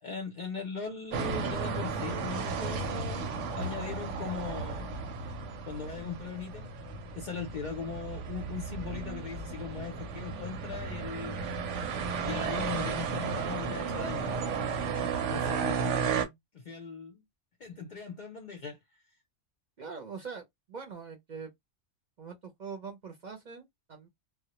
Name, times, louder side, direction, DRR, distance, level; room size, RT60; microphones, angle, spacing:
voice 1, 0.0-3.3 3.5-4.9 5.7-6.7 7.1-11.4 12.2-14.4 15.3-17.2 17.6-18.8, left 5 dB, 60° left, 0.5 m, -39 dB
sound 1, 1.1-16.3, right 5 dB, 85° right, 0.9 m, -34 dB
voice 2, 19.8-21.5 22.2-24.1, right 5 dB, 50° right, 0.6 m, -43 dB
2.1 x 2.1 x 2.8 m
omnidirectional pair, 1.2 m